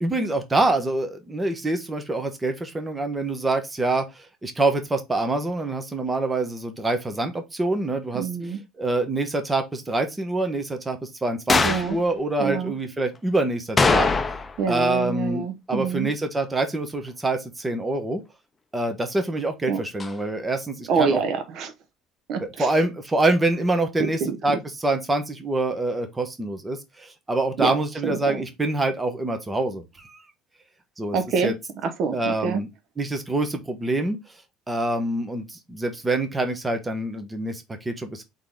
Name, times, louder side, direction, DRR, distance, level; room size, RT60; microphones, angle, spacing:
voice 1, 0.0-8.3 8.8-14.1 14.7-18.2 18.7-21.2 22.4-30.2 31.0-31.2 31.4-31.5 32.1-32.7 33.0-34.2 34.7-38.2, right 2 dB, 15° right, 1.0 m, -25 dB
voice 2, 8.1-8.6 11.6-12.0 12.4-12.7 14.6-16.1 19.7-19.8 20.9-21.7 22.3-22.7 24.0-24.4 27.6-27.7 28.0-28.4 31.1-31.5 31.8-32.6, right 5 dB, 55° right, 0.9 m, -26 dB
sound 1, 11.5-11.9 13.8-14.6 14.9-15.0 20.0-20.1, left 4 dB, 20° left, 0.6 m, -21 dB
4.0 x 3.7 x 3.4 m
cardioid pair, 125°, 0 cm